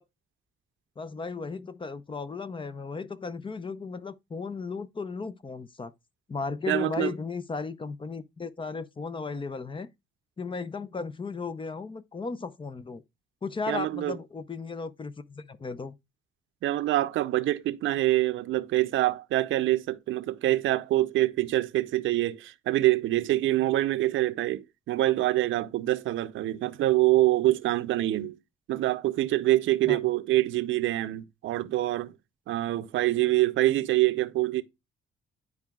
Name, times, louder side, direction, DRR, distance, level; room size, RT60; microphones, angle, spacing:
voice 1, 1.0-5.9 6.3-9.9 10.4-13.0 13.4-15.9 29.9-30.0, left 4 dB, 25° left, 0.6 m, -35 dB
voice 2, 6.7-7.1 13.7-14.2 16.6-28.4 28.7-32.1 32.5-34.6, right 16 dB, 80° right, 0.6 m, -25 dB
10.5 x 4.7 x 2.3 m
cardioid pair, 90°, 20 cm